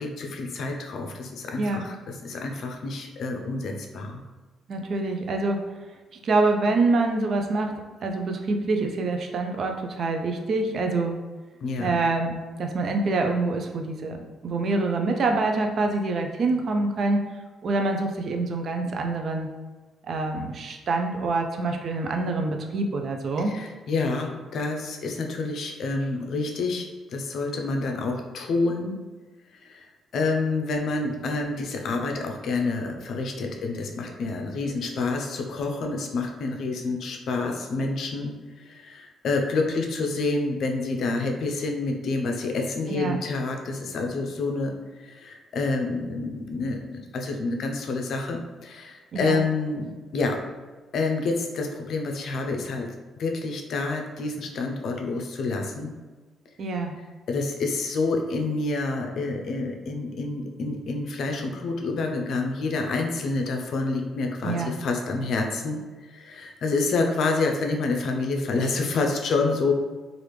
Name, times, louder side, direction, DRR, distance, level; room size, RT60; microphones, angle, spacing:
voice 1, 0.0-4.2 11.6-12.0 23.5-29.0 29.5-29.9 30.1-50.4 50.9-55.9 57.3-69.7, left 3 dB, 65° left, 3 dB, 0.5 m, -28 dB
voice 2, 4.7-5.6 6.1-11.2 11.8-17.3 17.6-19.5 20.0-23.5 42.9-43.2 49.1-49.4 56.6-56.9 64.4-64.7, right 3 dB, 55° right, 4 dB, 0.4 m, -26 dB
3.3 x 2.4 x 3.1 m, 1.3 s
cardioid pair, 90°, 0 cm